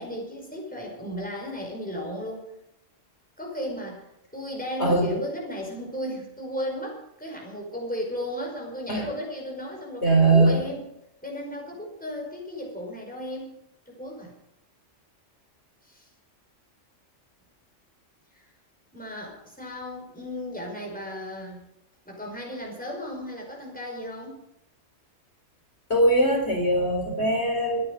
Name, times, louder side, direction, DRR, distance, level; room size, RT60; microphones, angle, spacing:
voice 1, 0.0-2.5 3.4-4.0 4.3-10.9 11.2-13.6 13.9-14.4 15.8-16.1 18.3-18.4 18.9-21.6 22.1-24.4, equal, 5° left, -1 dB, 5.3 m, -35 dB
voice 2, 10.0-10.6 25.9-27.9, right 2 dB, 60° left, 1 dB, 4.1 m, -21 dB
24.5 x 10.0 x 5.3 m, 0.83 s
omnidirectional pair, 1.3 m